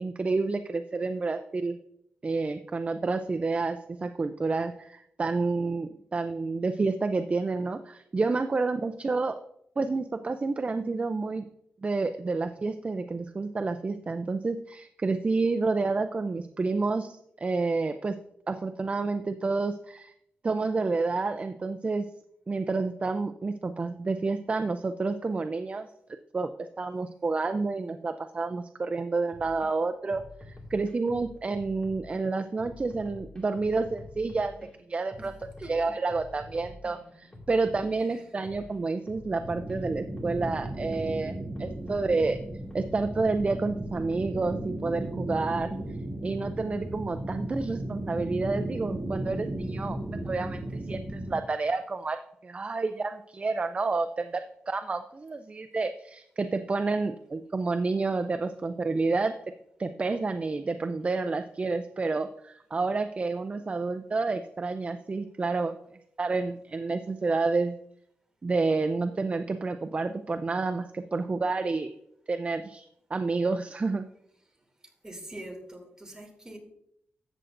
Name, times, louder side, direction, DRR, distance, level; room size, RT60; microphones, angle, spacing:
voice 1, 0.0-1.8 2.2-9.4 9.8-11.5 11.8-18.2 18.5-20.1 20.4-22.1 22.5-25.9 26.3-35.3 35.7-41.3 41.6-42.4 42.7-45.7 46.2-50.0 50.2-59.3 59.8-65.8 66.2-67.7 68.4-71.9 72.3-72.9 73.1-74.1, right 3 dB, 35° right, 8 dB, 0.4 m, -29 dB
sound 1, 29.3-29.7 30.1-32.2 32.6-34.7 35.1-39.8 40.2-41.0 41.6-42.3 42.7-44.6, left 2 dB, 20° left, 2.2 m, -48 dB
sound 2, 39.4-51.4, right 1 dB, 50° right, 2.4 m, -35 dB
voice 2, 74.5-76.6, right 1 dB, 15° right, 1 dB, 2.6 m, -44 dB
13.5 x 7.9 x 2.6 m, 0.73 s
cardioid pair, 85°, 4 cm